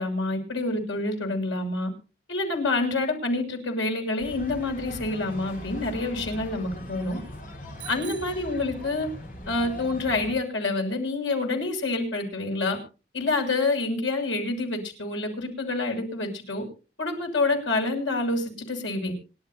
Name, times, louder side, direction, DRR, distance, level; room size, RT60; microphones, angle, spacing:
voice 1, 0.0-1.9 2.3-7.2 7.9-9.1 9.5-12.8 13.1-16.6 17.0-19.1, left 2 dB, 90° left, 3 dB, 6.5 m, -27 dB
sound 1, 4.2-10.3, left 1 dB, 45° left, 4.8 m, -40 dB
Bicycle bell, 7.8-9.3, right 11 dB, 65° right, 7.3 m, -45 dB
26.0 x 12.5 x 2.7 m, 0.35 s
head